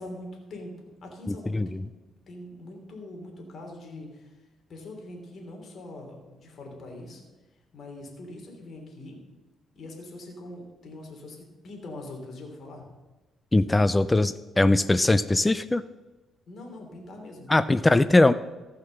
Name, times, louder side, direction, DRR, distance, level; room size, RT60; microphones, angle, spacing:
voice 1, 0.0-2.0 2.3-7.2 7.7-9.2 9.7-11.4 11.6-12.9 16.5-17.9, left 2 dB, 55° left, 1 dB, 3.2 m, -43 dB
voice 2, 13.5-15.8 17.5-18.3, left 2 dB, 15° left, 14 dB, 0.4 m, -20 dB
15.0 x 5.8 x 6.5 m, 1.2 s
cardioid pair, 90°, 0 cm